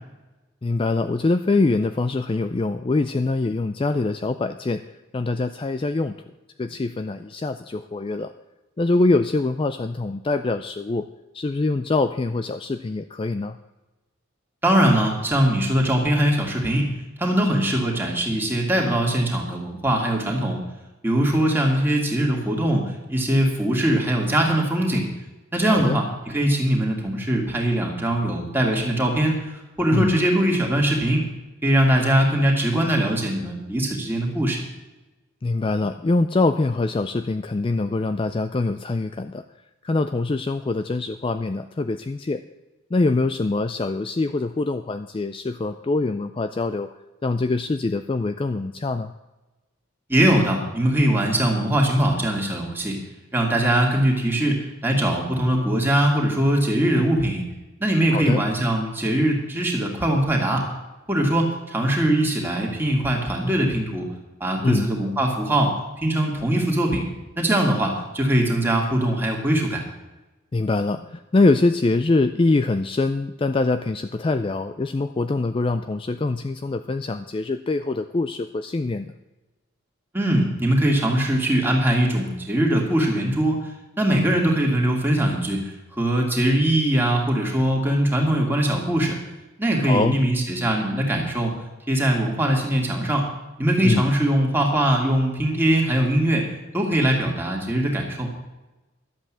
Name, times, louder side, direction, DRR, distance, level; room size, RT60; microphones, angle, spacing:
voice 1, 0.6-4.8 5.1-6.1 6.6-8.3 8.8-11.1 11.3-13.6 25.7-26.0 29.9-30.2 35.4-39.4 39.8-42.4 42.9-46.9 47.2-49.1 58.1-58.4 64.6-65.0 70.5-79.1 89.8-90.2 93.8-94.0, left 3 dB, 25° left, 10 dB, 0.3 m, -24 dB
voice 2, 14.6-16.9 17.2-20.6 21.0-25.0 25.5-29.4 29.8-31.2 31.6-34.6 50.1-53.0 53.3-57.4 57.8-60.7 61.1-64.1 64.4-67.1 67.4-69.8 80.1-83.6 84.0-89.2 89.6-91.5 91.9-93.3 93.6-96.4 96.7-98.3, right 1 dB, 10° right, -1 dB, 2.3 m, -21 dB
12.0 x 8.1 x 7.4 m, 1.1 s
head